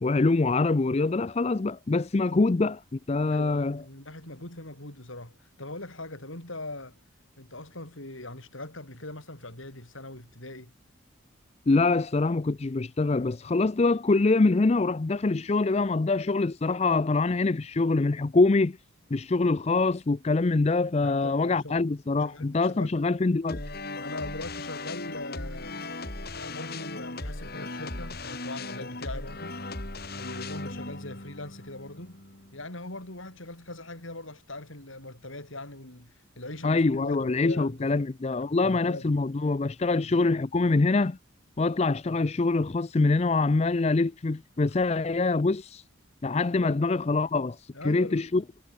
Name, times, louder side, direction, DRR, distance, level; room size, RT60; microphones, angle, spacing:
voice 1, 0.0-3.8 11.7-18.8 19.1-23.6 36.6-41.2 41.6-45.8 46.2-48.4, left 3 dB, 30° left, 0.4 m, -24 dB
voice 2, 3.2-7.0 7.4-10.7 21.0-21.8 22.2-23.0 23.9-25.8 26.3-29.6 30.1-32.2 32.5-38.1 38.6-39.1 39.9-40.2 42.1-42.2 46.3-46.8 47.7-48.3, left 2 dB, 70° left, 6.5 m, -41 dB
sound 1, 23.5-32.6, left 2 dB, 50° left, 4.0 m, -38 dB
head